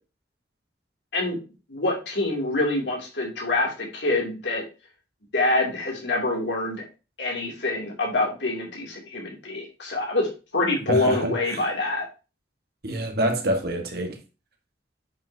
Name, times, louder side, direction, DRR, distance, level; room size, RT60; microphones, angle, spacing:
voice 1, 1.7-4.6 5.3-6.8 7.2-12.1, left 2 dB, 80° left, 3.0 m, -26 dB
voice 2, 10.9-11.7 12.8-14.2, right 1 dB, 60° right, 1.7 m, -26 dB
8.6 x 5.7 x 2.9 m
head